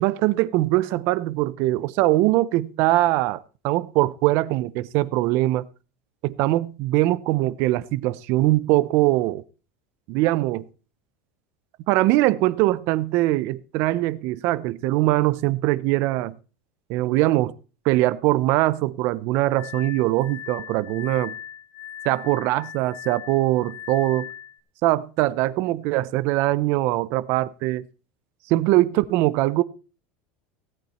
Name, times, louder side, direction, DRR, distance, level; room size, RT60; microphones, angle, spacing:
voice 1, 0.0-5.7 6.2-9.4 10.1-10.6 11.9-16.4 16.9-17.5 17.8-21.3 22.0-24.3 24.8-27.9 28.5-29.6, right 17 dB, 45° right, 0.6 m, -22 dB
Glass, 19.6-24.6, left 10 dB, 60° left, 1.9 m, -39 dB
16.5 x 8.8 x 4.3 m
supercardioid pair, 170°, 6 cm